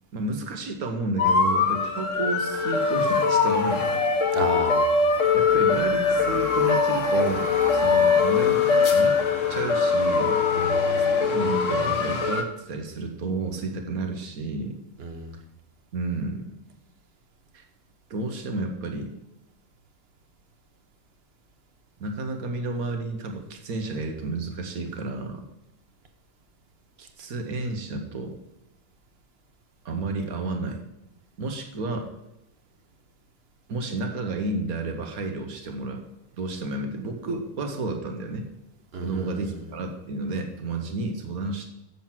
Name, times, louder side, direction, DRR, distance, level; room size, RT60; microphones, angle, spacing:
voice 1, 0.1-3.9 5.3-8.6 8.9-9.2 9.5-10.4 11.2-14.8 15.9-16.5 17.5-17.6 18.1-19.1 22.0-25.4 27.0-28.4 29.9-30.8 31.4-32.1 33.7-36.0 36.4-38.5 39.0-41.7, right 3 dB, 85° right, 4 dB, 1.6 m, -31 dB
sound 1, 1.2-12.4, left 5 dB, 60° left, 1.4 m, -22 dB
voice 2, 4.3-5.1 10.5-10.9 15.0-15.3 38.9-39.4, right 4 dB, 50° right, 7 dB, 1.1 m, -32 dB
7.4 x 7.1 x 6.0 m, 0.92 s
omnidirectional pair, 1.5 m